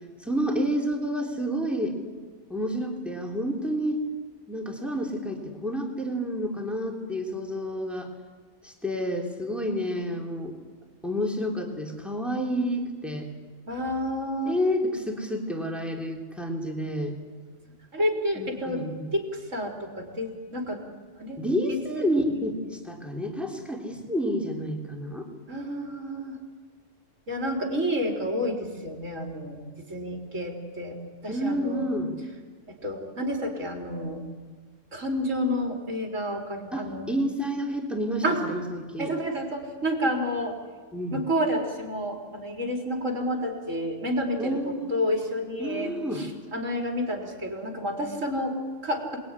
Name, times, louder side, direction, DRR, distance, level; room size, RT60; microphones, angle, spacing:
voice 1, 0.2-2.0 2.5-4.0 4.5-8.1 8.6-10.6 11.0-13.3 14.4-17.2 18.4-19.1 21.4-25.3 31.3-32.2 36.7-39.1 40.9-41.2 44.4-44.9 45.6-46.3, equal, ahead, 1 dB, 3.5 m, -29 dB
voice 2, 13.7-14.6 17.9-18.9 19.1-20.8 21.2-21.4 21.7-22.1 25.5-26.4 27.3-31.0 31.2-31.9 32.7-34.3 34.9-37.1 38.2-38.4 39.0-40.6 41.1-49.2, equal, 90° right, 1 dB, 4.5 m, -30 dB
27.5 x 21.0 x 9.8 m, 1.5 s
omnidirectional pair, 1.3 m